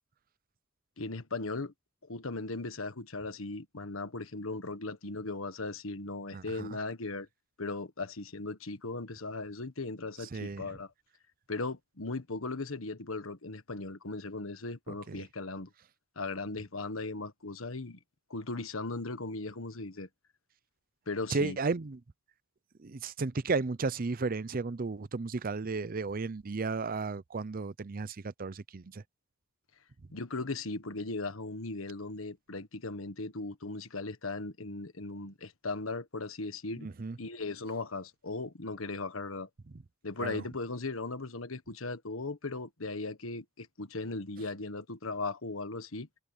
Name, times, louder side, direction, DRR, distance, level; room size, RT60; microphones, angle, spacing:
voice 1, 1.0-1.7 2.0-7.3 7.6-10.9 11.5-15.7 16.1-18.0 18.3-20.1 21.1-21.6 30.1-36.9 37.2-39.5 40.0-46.1, left 3 dB, 85° left, 1.5 m, -38 dB
voice 2, 6.3-6.7 10.3-10.7 14.9-15.2 21.3-22.0 22.8-29.0 36.8-37.2 40.2-40.4, right 4 dB, 45° right, 0.6 m, -34 dB
head